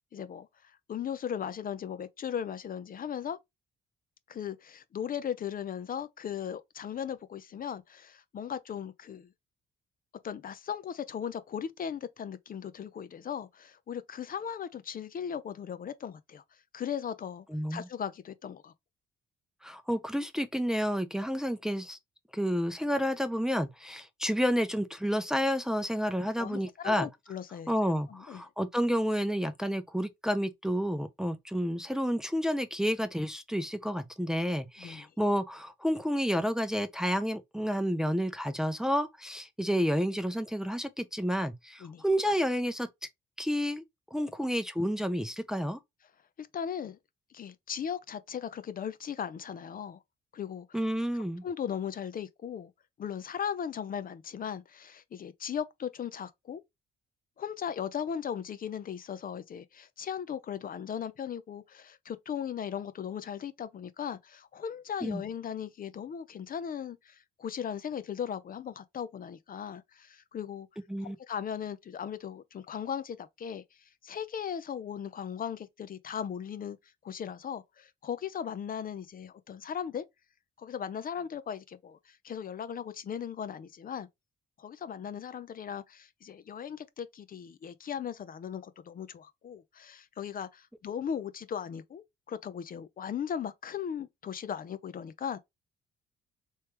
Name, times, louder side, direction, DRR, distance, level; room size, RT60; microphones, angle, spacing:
voice 1, 0.1-3.4 4.3-9.3 10.2-16.4 16.7-18.7 26.4-27.7 28.1-28.4 34.8-35.1 41.8-42.0 46.4-47.0 47.3-50.0 50.3-50.7 51.4-52.7 53.0-56.6 57.4-70.7 71.0-76.8 77.0-80.0 80.6-84.1 84.6-95.4, left 8 dB, 45° left, 0.5 m, -38 dB
voice 2, 17.5-17.9 19.6-22.0 22.3-27.1 27.7-42.9 43.4-43.8 44.1-45.8 50.7-51.4 65.0-65.2 70.9-71.2, equal, 5° right, 0.5 m, -30 dB
3.2 x 3.1 x 3.2 m
cardioid pair, 90°, 20 cm